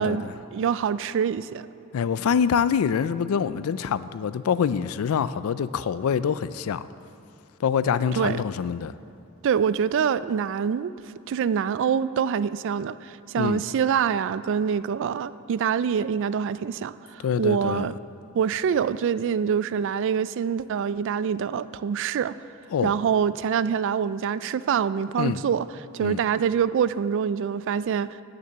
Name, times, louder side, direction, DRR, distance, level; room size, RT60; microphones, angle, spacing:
voice 1, 0.0-0.3 1.9-6.9 7.6-8.9 13.4-13.6 17.2-17.9 22.7-22.9 25.2-25.4 26.0-26.2, left 7 dB, 75° left, 0.4 m, -25 dB
voice 2, 0.5-1.7 8.2-8.4 9.4-10.9 11.3-17.9 18.3-22.3 22.8-25.7 25.9-28.2, right 7 dB, 60° right, 0.3 m, -25 dB
9.5 x 6.8 x 7.4 m
head